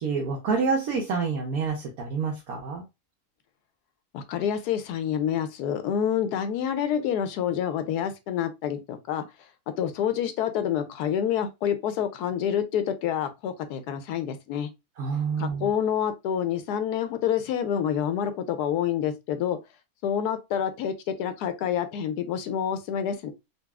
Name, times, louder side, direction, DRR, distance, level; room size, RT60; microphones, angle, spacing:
voice 1, 0.0-2.8 15.0-15.7, right 5 dB, 70° right, 1.2 m, -28 dB
voice 2, 4.1-9.2 9.8-14.7 15.4-19.6 20.0-23.3, left 9 dB, 85° left, 1.1 m, -27 dB
4.0 x 2.3 x 2.2 m
omnidirectional pair, 1.7 m